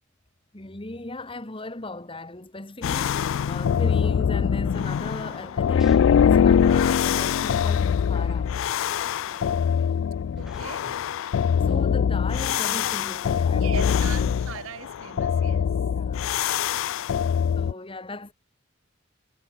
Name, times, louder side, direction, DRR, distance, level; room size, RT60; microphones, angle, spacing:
voice 1, 0.5-8.5 9.7-9.8 10.8-10.9 11.4-14.4 15.1-15.2 15.9-16.3 17.5-18.3, left 2 dB, 25° left, 1.5 m, -37 dB
sound 1, 1.8-1.9 2.1-2.2 5.1-7.6 8.0-8.1 8.5-9.6 10.4-10.9 12.5-13.7 14.1-14.3, equal, ahead, 7.2 m, -55 dB
sound 2, 2.8-17.7, left 7 dB, 70° left, 0.3 m, -23 dB
voice 2, 10.4-10.9 13.5-15.7, right 7 dB, 75° right, 0.5 m, -39 dB
head